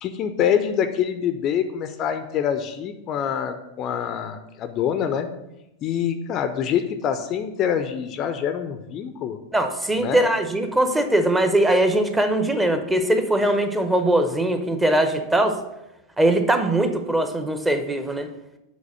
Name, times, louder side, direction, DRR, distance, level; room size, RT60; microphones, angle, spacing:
voice 1, 0.0-5.3 5.8-9.4 10.0-10.2, left 8 dB, 35° left, 8 dB, 0.5 m, -25 dB
voice 2, 9.5-15.6 16.2-18.3, right 1 dB, 10° right, 7 dB, 0.8 m, -21 dB
7.2 x 4.1 x 6.3 m, 0.91 s
figure-of-eight pair, 90°, 0 cm